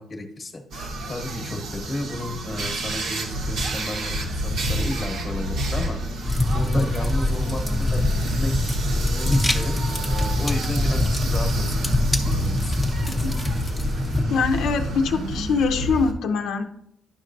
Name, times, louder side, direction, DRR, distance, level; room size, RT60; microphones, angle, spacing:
voice 1, 0.0-6.0 6.5-8.6 8.9-11.8 12.4-12.8, left 1 dB, 20° left, 4 dB, 1.0 m, -33 dB
sound 1, 0.7-16.1, right 1 dB, 65° right, 1.0 m, -29 dB
sound 2, 6.2-14.2, left 1 dB, ahead, 0.7 m, -24 dB
voice 2, 14.3-16.6, left 5 dB, 80° left, 4 dB, 0.5 m, -23 dB
10.5 x 6.4 x 2.6 m, 0.77 s
cardioid pair, 170°, 0 cm